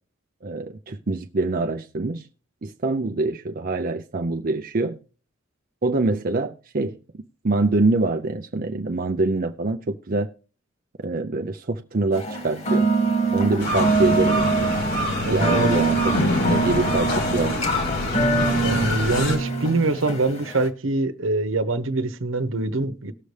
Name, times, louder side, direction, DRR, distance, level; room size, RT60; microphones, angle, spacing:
voice 1, 0.4-2.3 2.6-5.0 5.8-7.0 7.4-10.3 11.0-12.9 13.3-14.7 15.3-17.6, right 2 dB, 45° right, 0.6 m, -25 dB
sound 1, 12.1-20.7, right 3 dB, 35° left, 1.8 m, -24 dB
sound 2, 13.6-19.4, left 1 dB, 60° left, 3.2 m, -25 dB
voice 2, 15.2-15.7 18.6-23.1, right 2 dB, 85° right, 1.0 m, -24 dB
19.0 x 6.7 x 3.3 m
head